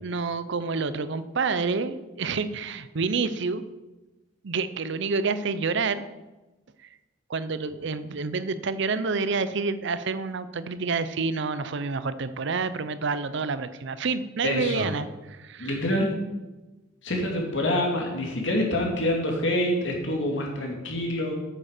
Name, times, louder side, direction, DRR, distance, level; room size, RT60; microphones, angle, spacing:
voice 1, 0.0-3.6 4.4-6.0 7.3-15.7, right 4 dB, 65° right, 13 dB, 0.6 m, -28 dB
voice 2, 14.4-14.9 15.6-16.1 17.0-21.3, left 1 dB, 65° left, 1 dB, 2.5 m, -26 dB
8.8 x 7.6 x 6.6 m, 1.1 s
head